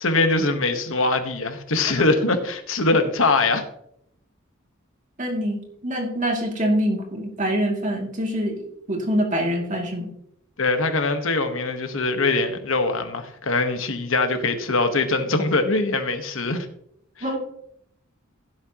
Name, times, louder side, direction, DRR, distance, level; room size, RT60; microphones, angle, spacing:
voice 1, 0.0-3.6 10.6-16.7 17.2-17.3, left 3 dB, 65° left, 7 dB, 1.3 m, -22 dB
voice 2, 5.2-10.1 17.2-17.4, equal, 35° right, 0 dB, 2.6 m, -25 dB
16.5 x 7.6 x 3.0 m, 0.74 s
head